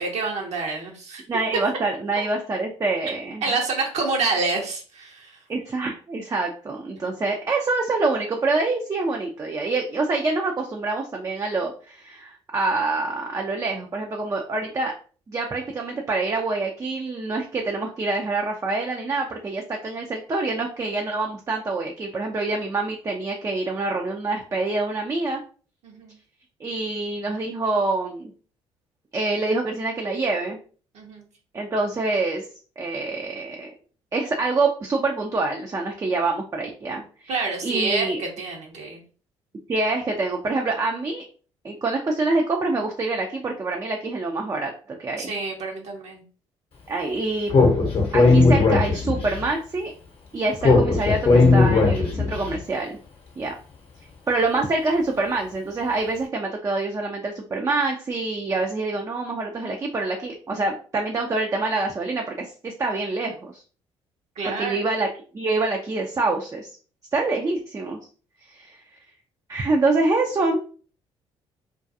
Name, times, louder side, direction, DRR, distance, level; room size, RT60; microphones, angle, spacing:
voice 1, 0.0-1.2 3.4-5.4 25.8-26.1 30.9-31.3 37.3-39.0 45.2-46.2 64.4-64.8, right 3 dB, 55° right, 0 dB, 0.8 m, -27 dB
voice 2, 1.3-3.4 5.5-15.0 15.3-25.4 26.6-28.3 29.1-30.6 31.5-32.5 32.8-33.7 34.1-38.2 39.7-41.2 41.6-45.3 46.9-47.5 48.1-49.9 50.3-53.0 53.4-53.5 54.3-63.6 64.5-65.1 65.3-66.7 67.1-68.0 68.5-68.8 69.5-70.6, right 3 dB, 25° right, 1 dB, 0.4 m, -26 dB
Speech, 47.5-49.3 50.6-52.4, left 3 dB, 45° left, 0.8 m, -17 dB
2.3 x 2.2 x 2.6 m, 0.40 s
hypercardioid pair, 50°, 14 cm